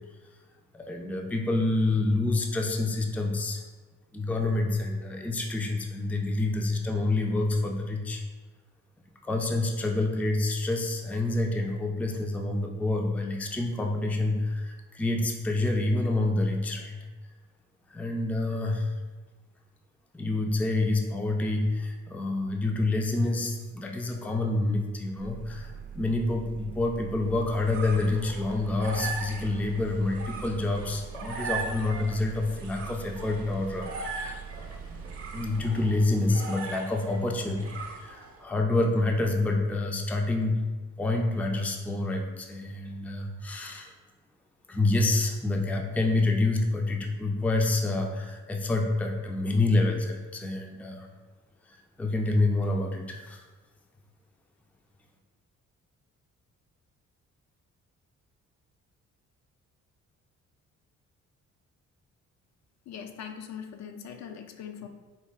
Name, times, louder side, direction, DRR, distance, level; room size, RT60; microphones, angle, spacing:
voice 1, 0.7-3.6 4.1-8.2 9.2-17.0 17.9-18.9 20.1-35.1 35.3-40.7 41.0-43.9 44.7-51.1 51.7-53.4, left 2 dB, 5° left, 2 dB, 0.3 m, -28 dB
sound 1, 25.2-35.7, right 7 dB, 90° right, 0.6 m, -43 dB
sound 2, 27.3-38.4, right 4 dB, 50° right, 0.7 m, -39 dB
voice 2, 62.9-64.9, left 7 dB, 65° left, 6 dB, 0.5 m, -41 dB
4.1 x 2.3 x 3.5 m, 1.3 s
cardioid pair, 90°, 30 cm